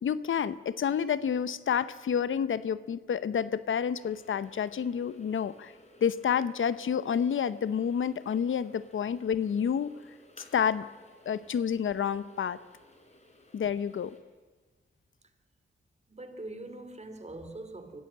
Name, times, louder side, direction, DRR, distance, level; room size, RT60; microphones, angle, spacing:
voice 1, 0.0-5.7 6.0-10.0 10.5-10.9 11.3-12.6 13.5-14.2, left 7 dB, 75° left, 0.8 m, -29 dB
sound 1, 3.9-14.2, left 1 dB, 35° left, 4.4 m, -58 dB
voice 2, 16.1-18.0, right 2 dB, 35° right, 2.7 m, -42 dB
24.0 x 15.0 x 7.4 m
cardioid pair, 65°, 20 cm